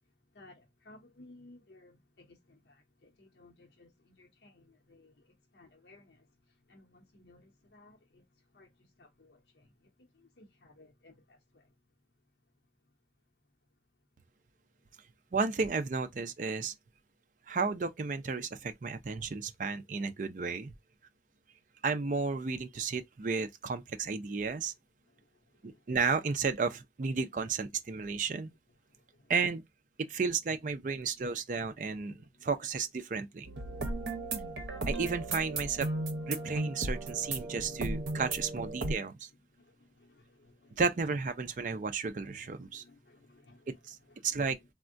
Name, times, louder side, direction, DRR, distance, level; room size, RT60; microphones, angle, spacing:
voice 1, 0.3-11.7 25.1-25.8 27.9-28.2 28.9-29.3 31.9-32.5 33.7-34.8 37.8-38.0 39.5-40.8 42.2-43.8 44.1-44.5, left 2 dB, 75° left, 0.8 m, -60 dB
voice 2, 15.3-16.7 17.5-20.7 21.8-24.7 25.6-28.5 29.3-29.6 30.1-33.5 34.9-35.9 36.3-39.3 40.8-42.8 43.9-44.0 44.2-44.6, right 4 dB, 45° right, 0.4 m, -33 dB
sound 1, 33.4-38.9, right 2 dB, 75° right, 0.7 m, -36 dB
3.5 x 2.1 x 2.5 m
head